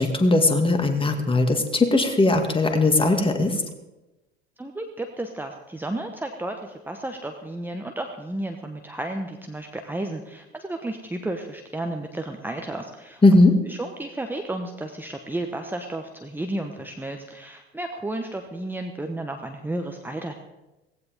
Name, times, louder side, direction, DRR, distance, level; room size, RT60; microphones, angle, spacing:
voice 1, 0.0-3.6 13.2-13.5, left 2 dB, 15° left, 5 dB, 2.2 m, -19 dB
voice 2, 4.6-13.4 13.7-20.3, right 1 dB, 5° right, 4 dB, 1.3 m, -32 dB
18.0 x 16.0 x 3.7 m, 1.0 s
figure-of-eight pair, 65°, 32 cm